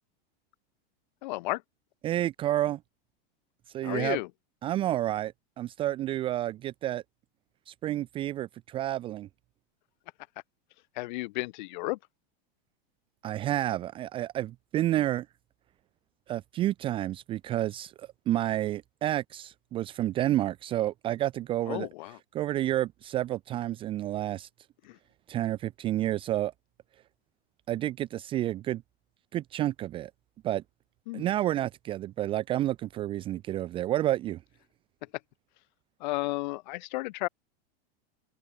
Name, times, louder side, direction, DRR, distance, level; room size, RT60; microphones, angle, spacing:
voice 1, 1.2-1.6 3.8-4.3 11.0-12.0 21.7-22.2 24.8-25.0 31.1-31.3 35.0-35.1 36.0-37.3, left 21 dB, 45° left, 5.3 m, -33 dB
voice 2, 2.0-2.8 3.7-4.2 4.6-7.0 7.7-9.3 13.2-15.3 16.3-21.9 22.3-24.5 25.3-26.5 27.7-28.8 29.3-30.1 30.4-30.6 31.1-34.4, right 13 dB, 15° right, 0.7 m, -30 dB
open air
supercardioid pair, 175°, 31 cm